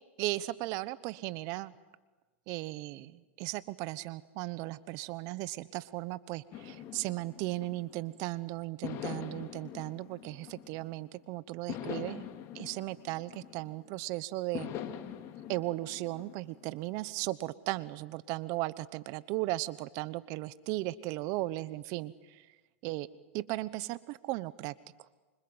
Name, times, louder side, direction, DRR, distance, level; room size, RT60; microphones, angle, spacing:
voice 1, 0.2-1.7 2.5-12.2 12.5-14.7 15.5-22.4 22.8-23.1 23.3-24.7, right 18 dB, 50° right, 17 dB, 1.0 m, -36 dB
sound 1, 6.5-8.2 8.8-11.1 11.7-13.9 14.5-16.8, left 10 dB, 45° left, 2.4 m, -43 dB
26.5 x 25.0 x 8.0 m, 1.2 s
hypercardioid pair, 115°, 7 cm